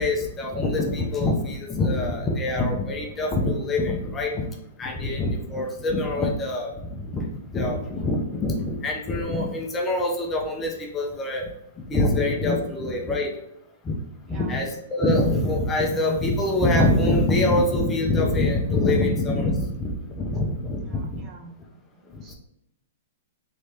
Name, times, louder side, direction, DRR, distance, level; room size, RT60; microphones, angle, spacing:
voice 1, 0.0-4.5 4.8-11.5 11.9-13.3 13.8-14.0 14.3-21.2 22.1-22.3, left 2 dB, 20° left, 0 dB, 0.6 m, -24 dB
voice 2, 14.3-14.6 20.8-21.6 22.0-22.3, right 4 dB, 30° right, 1 dB, 0.8 m, -47 dB
3.2 x 3.1 x 2.8 m, 0.81 s
hypercardioid pair, 125°, 0 cm